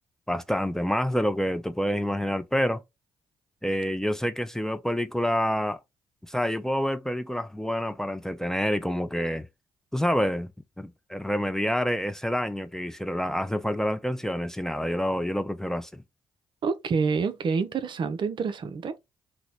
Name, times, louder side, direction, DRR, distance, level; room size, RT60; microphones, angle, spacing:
voice 1, 0.3-2.8 3.6-5.8 6.3-9.5 9.9-10.5 10.8-16.0, equal, 5° left, 0.4 m, -27 dB
voice 2, 16.6-19.0, right 5 dB, 50° right, 0.5 m, -27 dB
2.9 x 2.1 x 4.0 m
hypercardioid pair, 45°, 11 cm